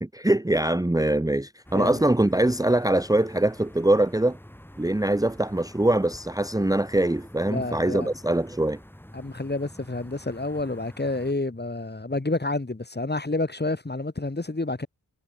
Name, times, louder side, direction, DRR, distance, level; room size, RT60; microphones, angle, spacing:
voice 1, 0.0-4.4 4.8-8.8, right 1 dB, 10° right, 1.1 m, -23 dB
sound 1, 1.6-11.3, equal, 5° left, 3.9 m, -47 dB
voice 2, 7.5-8.1 9.1-14.9, left 2 dB, 30° left, 2.8 m, -29 dB
wide cardioid pair, 65°, 35 cm